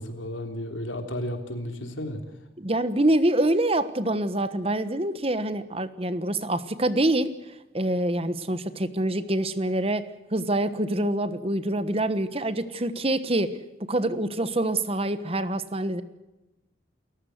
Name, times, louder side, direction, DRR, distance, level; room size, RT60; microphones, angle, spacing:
voice 1, 0.0-2.2, left 1 dB, 85° left, 6 dB, 3.5 m, -33 dB
voice 2, 2.6-13.6 13.9-16.0, right 1 dB, 30° right, 13 dB, 1.2 m, -26 dB
29.0 x 14.5 x 7.9 m, 0.99 s
head